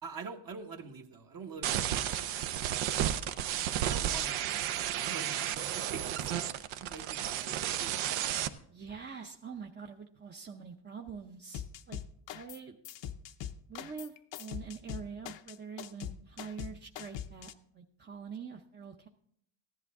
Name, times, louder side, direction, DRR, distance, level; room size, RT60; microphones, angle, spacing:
voice 1, 0.0-2.3 2.7-3.0 3.8-6.3 6.8-8.1, right 4 dB, 45° right, 3 dB, 1.2 m, -45 dB
sound 1, 1.6-8.5, right 11 dB, 80° right, 0.8 m, -32 dB
voice 2, 8.7-12.0 12.3-12.8 13.7-19.1, right 6 dB, 25° right, 2 dB, 0.7 m, -45 dB
sound 2, 11.5-12.6 12.8-17.5, left 10 dB, 70° left, 0.8 m, -42 dB
14.5 x 11.0 x 3.6 m, 0.67 s
cardioid pair, 115°, 47 cm